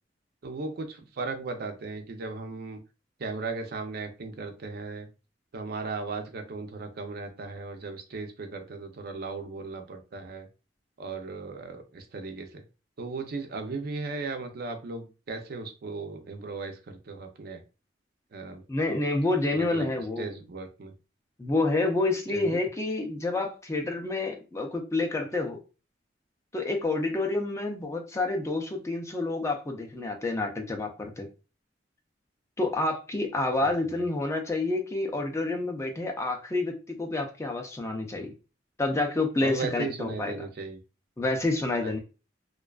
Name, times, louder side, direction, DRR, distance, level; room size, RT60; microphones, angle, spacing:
voice 1, 0.4-2.8 3.2-5.1 5.5-10.5 11.0-12.6 13.0-17.6 18.3-18.6 19.5-19.9 20.2-20.9 22.3-22.6 33.6-34.0 39.4-40.8 41.8-41.9, right 3 dB, 55° right, 6 dB, 0.4 m, -36 dB
voice 2, 18.7-20.3 21.4-25.6 26.5-31.3 32.6-38.3 38.8-40.5 41.2-42.0, left 2 dB, 15° left, 3 dB, 0.4 m, -28 dB
2.4 x 2.2 x 2.3 m, 0.32 s
head